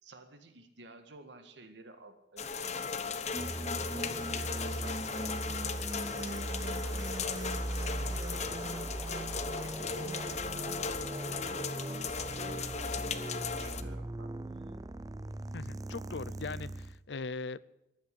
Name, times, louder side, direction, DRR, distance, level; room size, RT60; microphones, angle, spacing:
voice 1, 0.0-3.2 3.7-5.6 6.1-8.8 9.1-10.9 11.2-14.8, right 2 dB, 80° right, 7 dB, 1.8 m, -52 dB
sound 1, 2.4-13.8, left 5 dB, 40° left, 1.0 m, -37 dB
sound 2, 3.3-17.0, right 1 dB, 20° right, 0.5 m, -39 dB
voice 2, 15.5-17.6, left 4 dB, 70° left, 19 dB, 0.6 m, -40 dB
14.5 x 10.5 x 8.4 m, 0.86 s
head